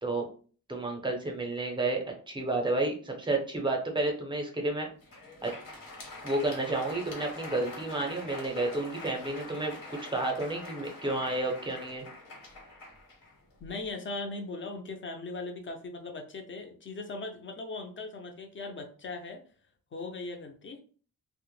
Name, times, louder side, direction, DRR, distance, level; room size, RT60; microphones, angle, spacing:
voice 1, 0.7-4.9 5.4-5.5 6.2-12.0, right 2 dB, 15° right, 2 dB, 0.5 m, -31 dB
Crowd, 4.9-13.8, left 2 dB, 70° left, 0.9 m, -44 dB
voice 2, 13.6-19.4 19.9-20.8, left 3 dB, 35° left, 4 dB, 0.4 m, -39 dB
2.1 x 2.0 x 3.0 m, 0.41 s
wide cardioid pair, 120°, 35 cm